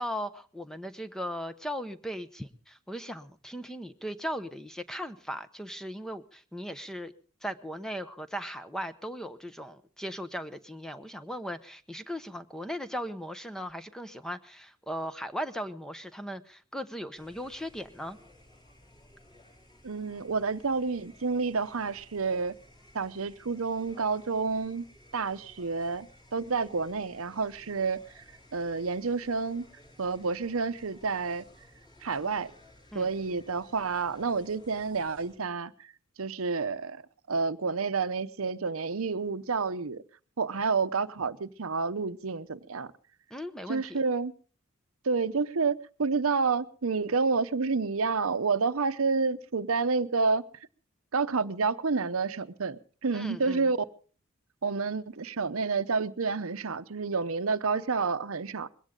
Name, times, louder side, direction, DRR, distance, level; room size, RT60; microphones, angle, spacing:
voice 1, 0.0-7.1 7.4-18.2 32.9-33.1 43.3-44.0 53.1-53.7, equal, 5° left, 0.8 m, -38 dB
sound 1, 17.1-35.4, left 1 dB, 20° left, 4.2 m, -57 dB
voice 2, 19.8-22.5 22.9-24.8 25.1-28.0 28.5-29.6 30.0-31.4 32.0-32.5 32.9-35.7 36.2-37.0 37.3-40.0 40.4-42.9 43.7-44.3 45.0-50.4 51.1-53.8 54.6-58.7, right 4 dB, 70° right, 0.8 m, -29 dB
21.5 x 16.5 x 3.8 m
head